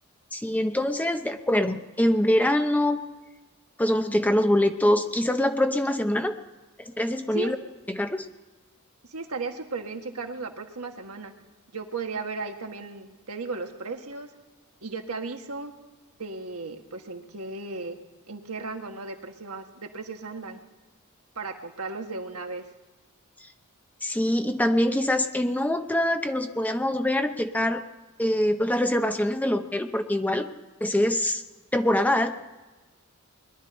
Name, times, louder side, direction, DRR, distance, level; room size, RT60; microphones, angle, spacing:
voice 1, 0.3-3.0 3.8-6.4 6.8-7.6 7.9-8.3 24.0-27.8 28.2-30.5 30.8-31.4 31.7-32.3, left 1 dB, 5° left, 7 dB, 0.7 m, -24 dB
voice 2, 9.0-11.3 11.7-14.3 14.8-15.7 16.2-18.0 18.3-20.6 21.3-22.7, right 3 dB, 75° right, 4 dB, 1.6 m, -35 dB
21.5 x 12.0 x 4.4 m, 1.2 s
head